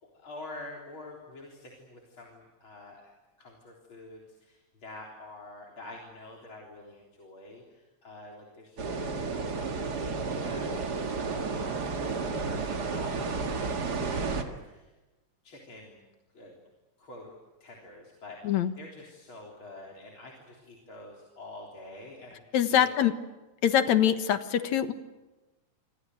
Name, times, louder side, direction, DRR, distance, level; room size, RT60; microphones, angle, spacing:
voice 1, 0.0-3.1 3.4-10.7 11.0-13.1 13.8-14.9 15.4-16.0 16.3-16.5 17.0-23.1, left 2 dB, 45° left, -1 dB, 4.4 m, -47 dB
sound 1, 8.8-14.4, right 4 dB, 35° right, 2.1 m, -32 dB
voice 2, 22.5-23.1 23.6-24.9, left 10 dB, 75° left, 10 dB, 2.7 m, -24 dB
28.0 x 25.0 x 7.9 m, 1.1 s
omnidirectional pair, 3.3 m